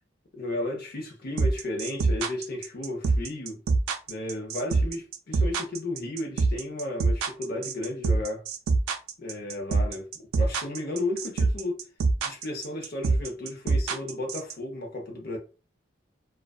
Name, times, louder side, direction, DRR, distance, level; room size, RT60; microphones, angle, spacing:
voice 1, 0.3-3.6 4.1-8.4 9.2-10.1 10.4-11.8 12.2-15.4, left 2 dB, 50° left, 0.7 m, -33 dB
sound 1, 1.4-14.5, right 3 dB, 90° right, 0.4 m, -24 dB
2.3 x 2.3 x 2.3 m
head